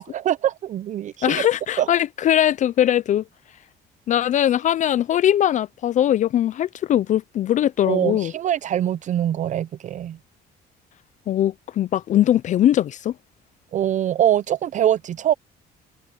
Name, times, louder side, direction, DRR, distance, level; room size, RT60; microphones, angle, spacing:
voice 1, 0.0-1.4 1.8-1.9 7.8-10.2 13.7-15.3, right 11 dB, 45° right, 0.6 m, -23 dB
voice 2, 1.2-3.2 4.1-8.3 11.3-13.1, left 11 dB, 45° left, 0.4 m, -20 dB
cardioid pair, 110°, 17 cm